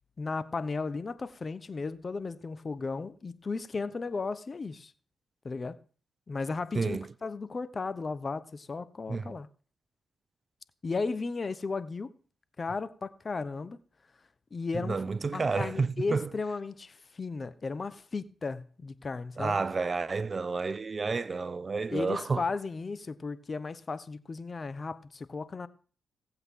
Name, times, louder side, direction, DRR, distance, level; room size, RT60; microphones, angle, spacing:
voice 1, 0.2-4.9 5.4-5.8 6.3-9.5 10.8-12.1 12.6-13.8 14.5-15.0 15.3-19.6 21.9-25.7, left 4 dB, 45° left, 1.0 m, -35 dB
voice 2, 6.7-7.1 9.1-9.4 14.7-16.3 19.4-22.4, right 4 dB, 45° right, 0.6 m, -30 dB
18.0 x 8.0 x 3.7 m
supercardioid pair, 45°, 0 cm